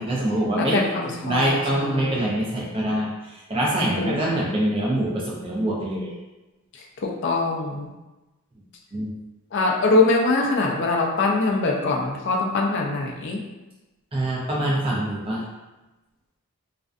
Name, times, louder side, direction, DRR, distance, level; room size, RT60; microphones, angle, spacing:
voice 1, 0.0-0.8 1.0-6.1 8.9-9.1 14.1-15.4, right 1 dB, 25° right, -4 dB, 0.5 m, -24 dB
voice 2, 0.6-2.2 4.0-4.2 6.7-7.9 9.5-13.4, left 3 dB, 50° left, 0 dB, 0.4 m, -23 dB
2.5 x 2.2 x 2.4 m, 1.1 s
head